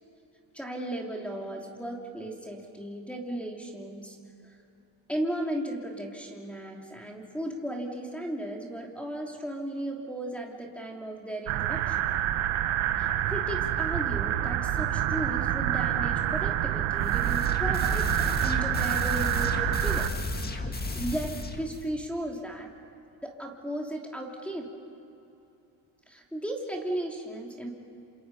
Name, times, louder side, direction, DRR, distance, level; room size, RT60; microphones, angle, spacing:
voice 1, 0.5-4.2 4.4-4.5 5.1-12.0 13.0-20.1 20.9-22.7 23.2-24.7 26.1-27.7, right 1 dB, ahead, -1 dB, 3.0 m, -35 dB
sound 1, 11.5-20.1, right 11 dB, 75° right, 1.3 m, -27 dB
sound 2, 17.0-21.9, left 2 dB, 20° left, 1.8 m, -34 dB
27.5 x 27.5 x 5.6 m, 2.7 s
cardioid pair, 105°, 49 cm